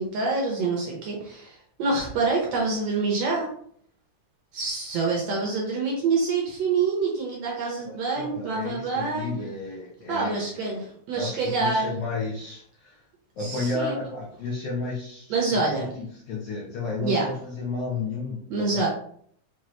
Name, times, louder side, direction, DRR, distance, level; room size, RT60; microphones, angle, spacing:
voice 1, 0.0-3.5 4.5-9.3 10.1-12.0 13.4-13.9 15.3-15.9 17.0-17.2 18.5-18.9, right 4 dB, 75° right, -2 dB, 1.5 m, -26 dB
voice 2, 7.8-10.7 11.1-13.0 13.3-18.9, left 3 dB, 85° left, -4 dB, 1.4 m, -33 dB
6.0 x 2.4 x 3.1 m, 0.63 s
omnidirectional pair, 3.9 m